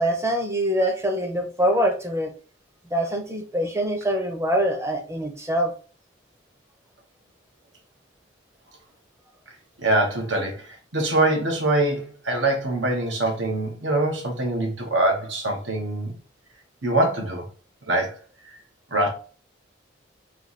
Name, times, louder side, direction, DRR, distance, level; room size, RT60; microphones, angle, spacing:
voice 1, 0.0-2.3 2.9-5.7, equal, 15° right, 0.7 m, -24 dB
voice 2, 9.8-16.1 16.8-17.5 17.9-18.1 18.4-18.5 18.9-19.1, right 2 dB, 85° right, 1.3 m, -24 dB
3.3 x 3.1 x 4.1 m
head